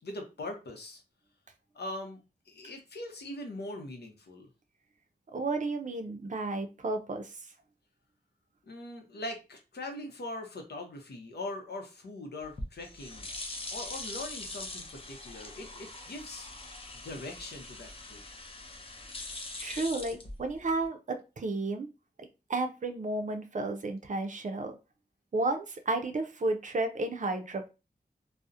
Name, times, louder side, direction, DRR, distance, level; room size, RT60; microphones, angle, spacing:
voice 1, 0.0-1.0 1.7-2.2 2.5-4.5 8.7-13.3 13.7-16.5 16.9-18.2, left 2 dB, 80° left, 3 dB, 0.6 m, -41 dB
voice 2, 5.3-7.4 19.6-21.9 22.2-24.8 25.3-27.7, right 2 dB, 50° right, 5 dB, 0.4 m, -32 dB
sound 1, 12.4-20.9, left 2 dB, 35° left, 0.5 m, -42 dB
2.6 x 2.0 x 2.3 m, 0.28 s
wide cardioid pair, 80°, 17 cm